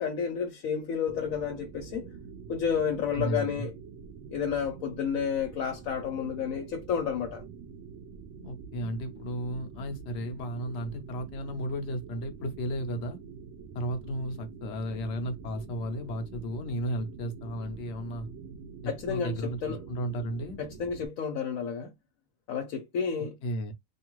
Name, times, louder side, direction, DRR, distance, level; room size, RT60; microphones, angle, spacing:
voice 1, 0.0-2.1 2.5-3.7 4.3-7.4 18.9-19.8 20.6-21.9 22.5-23.3, left 7 dB, 90° left, 1.1 m, -31 dB
sound 1, 1.1-21.1, right 5 dB, 70° right, 0.8 m, -46 dB
voice 2, 3.1-3.7 8.4-13.2 13.7-18.3 19.1-20.6 23.4-23.7, equal, 65° left, 0.9 m, -34 dB
2.5 x 2.4 x 3.0 m
omnidirectional pair, 1.4 m